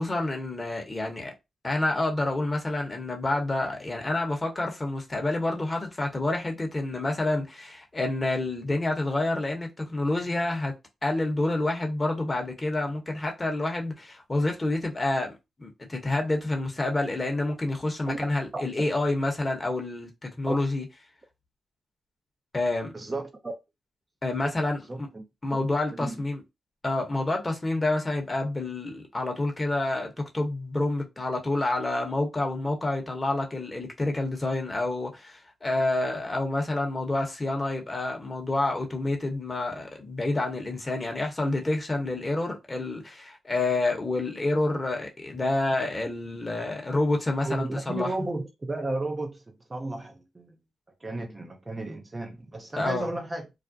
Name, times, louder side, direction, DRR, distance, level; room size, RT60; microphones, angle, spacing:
voice 1, 0.0-1.3 1.6-10.7 11.0-15.3 15.6-20.8 22.5-22.9 24.2-25.1 25.4-26.4 26.8-48.1 52.8-53.1, left 2 dB, 25° left, 0.9 m, -28 dB
voice 2, 22.9-23.5 24.4-24.5 24.9-25.2 25.5-25.6 25.9-26.2 47.4-50.6 51.0-53.5, right 2 dB, 25° right, 0.5 m, -33 dB
2.4 x 2.1 x 2.6 m
cardioid pair, 65°, 0 cm